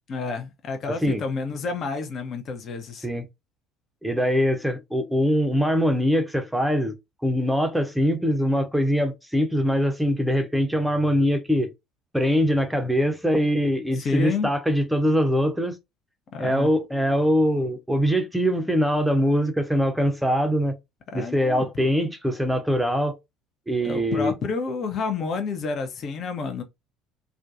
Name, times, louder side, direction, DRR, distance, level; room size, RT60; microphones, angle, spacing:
voice 1, 0.1-3.1 14.0-14.5 16.3-16.7 21.1-21.9 23.8-26.6, left 4 dB, 45° left, 0.6 m, -30 dB
voice 2, 0.9-1.2 3.0-3.2 4.0-6.9 7.2-11.7 12.1-15.8 16.4-20.7 21.1-23.1 23.7-24.3, equal, 5° right, 0.6 m, -23 dB
2.5 x 2.2 x 2.5 m
figure-of-eight pair, 60°, 0 cm